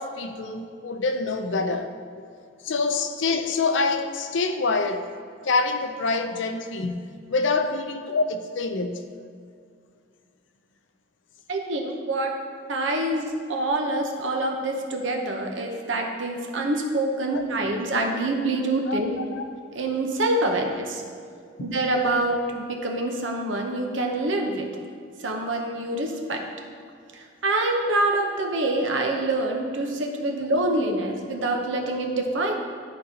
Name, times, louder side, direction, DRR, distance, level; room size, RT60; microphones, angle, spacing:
voice 1, 0.0-2.0 2.6-5.1 5.4-9.1 17.3-17.4 18.9-19.0 19.3-19.4 21.6-21.7, left 3 dB, 75° left, 7 dB, 0.5 m, -26 dB
voice 2, 11.5-12.3 12.7-19.2 19.7-21.0 21.6-24.7 25.2-26.5 27.1-32.5, right 2 dB, 85° right, 2 dB, 0.9 m, -26 dB
11.5 x 4.2 x 2.8 m, 2.3 s
head